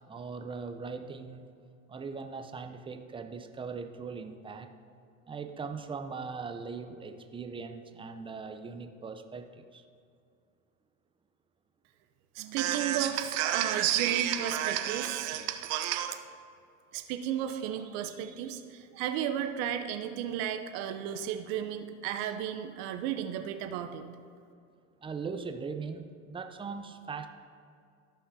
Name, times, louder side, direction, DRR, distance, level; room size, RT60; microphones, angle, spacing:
voice 1, 0.1-1.4 1.9-4.7 5.3-9.8 25.0-27.3, right 5 dB, 15° right, 7 dB, 0.6 m, -40 dB
voice 2, 12.3-16.2 16.9-24.0, right 10 dB, 65° right, 6 dB, 0.8 m, -32 dB
13.5 x 5.7 x 2.7 m, 2.3 s
hypercardioid pair, 85°, 40 cm